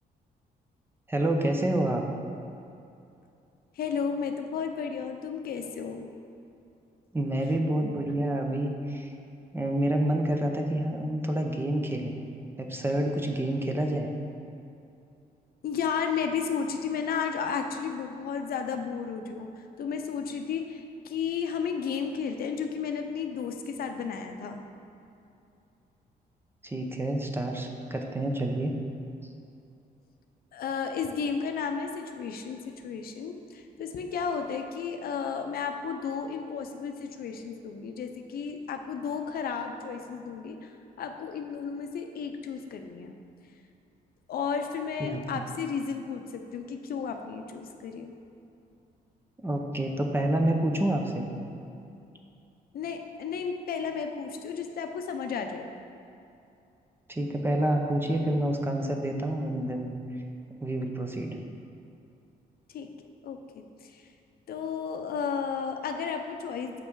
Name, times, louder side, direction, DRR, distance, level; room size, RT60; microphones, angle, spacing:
voice 1, 1.1-2.0 7.1-9.1 9.5-12.2 12.6-14.1 26.6-28.8 45.0-45.2 49.4-51.3 57.1-59.9 60.6-61.4, right 1 dB, 15° right, 2 dB, 0.6 m, -28 dB
voice 2, 3.8-6.1 15.6-19.5 19.8-24.6 30.5-32.6 32.8-40.7 41.0-43.1 44.3-48.1 52.7-55.7 62.7-62.9 63.2-64.0 64.5-66.8, left 6 dB, 65° left, 5 dB, 0.6 m, -33 dB
6.8 x 5.4 x 4.6 m, 2.7 s
cardioid pair, 130°, 16 cm